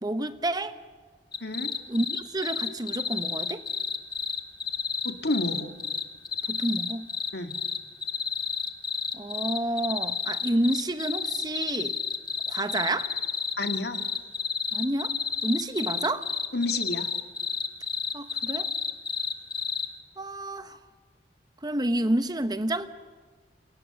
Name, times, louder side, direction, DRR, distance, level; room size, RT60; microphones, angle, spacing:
voice 1, 0.0-0.8 1.9-3.6 6.5-7.1 9.1-12.0 12.5-13.1 14.7-15.1 15.4-16.3 18.1-18.7 20.2-20.8 21.6-22.9, right 1 dB, 25° right, 10 dB, 1.0 m, -29 dB
sound 1, 1.3-19.9, left 6 dB, 25° left, 1.6 m, -30 dB
voice 2, 1.4-1.7 5.0-5.7 7.3-7.6 13.6-14.0 16.5-17.1, left 2 dB, 70° left, 6 dB, 2.1 m, -30 dB
29.0 x 27.0 x 7.0 m, 1.4 s
head